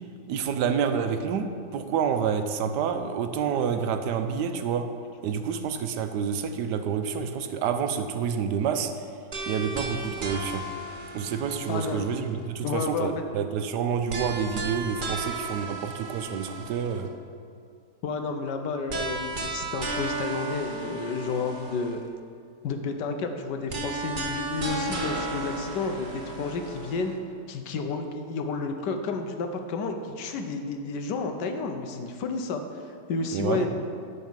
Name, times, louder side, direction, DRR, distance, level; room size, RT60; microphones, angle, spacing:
voice 1, 0.3-1.5 1.7-4.9 5.2-8.9 9.5-10.6 11.1-17.1 33.3-33.7, right 7 dB, 80° right, 7 dB, 1.2 m, -28 dB
sound 1, 9.3-12.4 14.1-17.1 18.9-22.1 23.7-27.1, right 3 dB, 40° right, 0.9 m, -34 dB
voice 2, 11.7-12.0 12.6-13.1 18.0-22.0 22.6-27.1 27.5-32.8 33.1-33.8, left 4 dB, 85° left, 5 dB, 1.4 m, -31 dB
10.5 x 4.2 x 7.3 m, 2.3 s
omnidirectional pair, 1.8 m